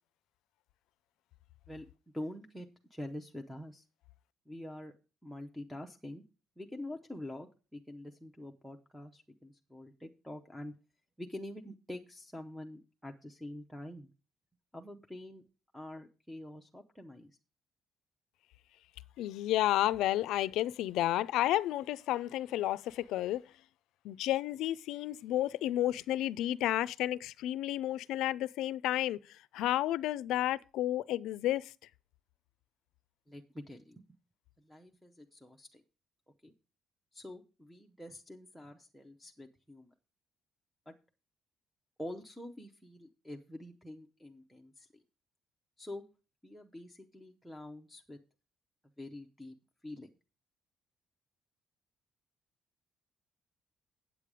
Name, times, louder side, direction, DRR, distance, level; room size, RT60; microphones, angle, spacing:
voice 1, 2.1-3.8 4.5-4.9 5.2-6.2 6.6-10.8 11.2-14.1 14.7-15.4 15.7-17.4 33.3-34.0 34.6-35.8 36.4-36.5 37.1-39.9 40.9-41.0 42.0-45.0 45.8-46.0 46.4-48.2 49.0-49.5 49.8-50.1, left 1 dB, ahead, 0.6 m, -46 dB
voice 2, 19.2-23.6 24.0-31.7, left 14 dB, 90° left, 0.4 m, -31 dB
8.5 x 8.0 x 4.8 m
cardioid pair, 170°, 0 cm